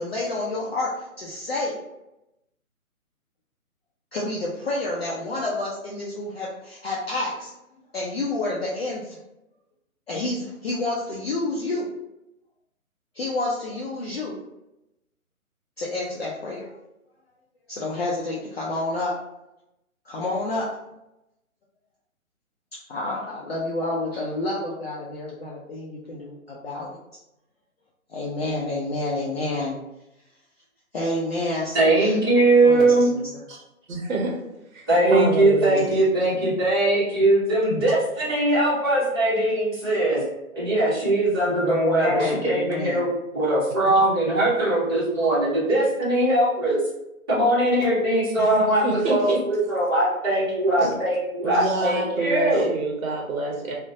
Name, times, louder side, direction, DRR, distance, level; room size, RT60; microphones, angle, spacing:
voice 1, 0.0-1.8 4.1-7.5 7.9-9.2 10.1-11.9 13.1-14.4 15.8-16.7 17.7-19.1 20.1-20.7 22.9-27.0 28.1-29.8 30.9-32.2 32.6-33.2 41.6-43.1, left 2 dB, 45° left, -5 dB, 0.4 m, -29 dB
voice 2, 31.7-33.1 34.9-40.2 40.5-43.1 43.3-46.8 47.3-52.7, right 1 dB, 15° right, -10 dB, 0.8 m, -21 dB
voice 3, 33.9-34.4 34.7-35.9 48.4-49.4 50.8-51.0 51.4-53.7, right 2 dB, 65° right, 0 dB, 0.7 m, -27 dB
2.4 x 2.1 x 2.5 m, 0.88 s
hypercardioid pair, 155°, 43 cm